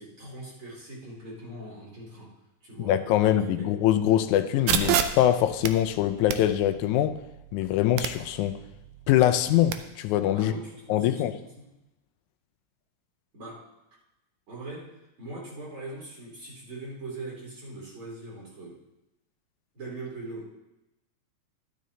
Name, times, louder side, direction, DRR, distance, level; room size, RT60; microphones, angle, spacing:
voice 1, 0.0-2.3 2.6-3.7 10.3-11.7 13.3-13.7 14.5-14.9 15.2-18.8 19.7-20.5, right 2 dB, 45° right, -4 dB, 3.7 m, -41 dB
voice 2, 2.8-7.2 7.5-8.6 9.1-10.5 10.9-11.4, left 12 dB, 90° left, 9 dB, 2.0 m, -23 dB
sound 1, 4.7-9.7, right 9 dB, 80° right, 2.0 m, -31 dB
12.5 x 12.0 x 2.8 m, 0.92 s
omnidirectional pair, 3.3 m